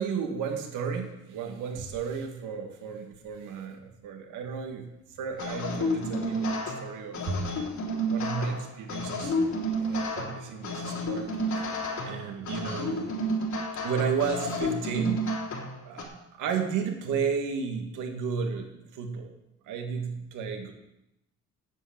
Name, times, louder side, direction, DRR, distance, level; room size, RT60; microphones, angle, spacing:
voice 1, 0.0-4.9 5.2-7.4 8.1-9.4 9.8-11.7 12.1-13.1 13.8-15.2 15.9-16.1 16.4-19.3 19.7-20.7, right 6 dB, 90° right, 4 dB, 2.1 m, -33 dB
sound 1, 5.4-16.0, equal, 65° left, 3.6 m, -31 dB
9.7 x 7.8 x 8.7 m, 0.85 s
cardioid pair, 90°, 30 cm